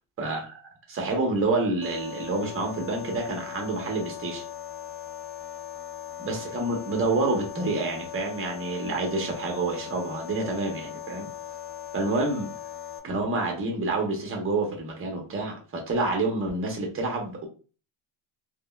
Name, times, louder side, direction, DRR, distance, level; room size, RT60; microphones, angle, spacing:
voice 1, 0.2-0.6 0.9-4.4 6.2-11.3 11.9-12.5 13.0-17.5, right 2 dB, 25° right, 0.8 m, -28 dB
sound 1, 1.8-13.0, left 10 dB, 50° left, 0.7 m, -39 dB
3.5 x 2.0 x 2.2 m
cardioid pair, 120°, 50 cm